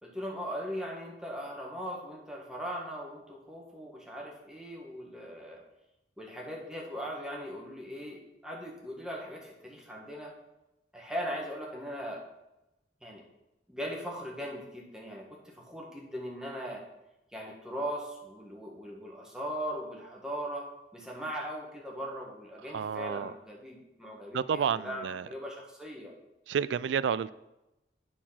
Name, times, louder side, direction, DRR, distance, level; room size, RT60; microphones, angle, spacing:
voice 1, 0.0-5.6 6.2-10.3 10.9-12.2 13.0-13.2 13.7-16.8 17.3-26.1, equal, 5° right, -2 dB, 1.5 m, -39 dB
voice 2, 22.7-23.3 24.3-25.3 26.5-27.3, right 7 dB, 90° right, 17 dB, 0.3 m, -30 dB
9.2 x 4.4 x 5.8 m, 0.94 s
head